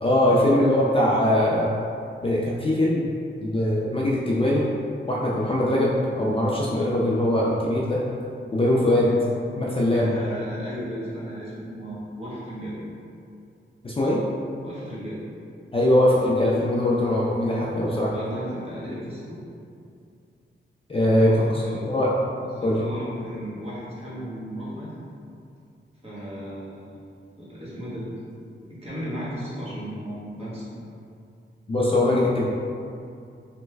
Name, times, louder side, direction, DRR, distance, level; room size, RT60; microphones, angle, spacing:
voice 1, 0.0-1.7 2.2-3.1 3.4-4.6 5.1-8.0 8.5-9.1 9.6-10.1 13.8-14.2 15.7-18.1 20.9-21.6 21.9-22.2 22.6-22.8 31.7-32.5, left 1 dB, 30° left, -5 dB, 0.4 m, -21 dB
voice 2, 8.8-9.2 9.9-12.8 14.6-15.2 18.1-19.4 21.1-21.9 22.4-25.0 26.0-26.9 27.4-28.0 28.8-30.7, equal, 30° right, -10 dB, 1.2 m, -35 dB
3.1 x 2.2 x 3.3 m, 2.5 s
wide cardioid pair, 90°, 20 cm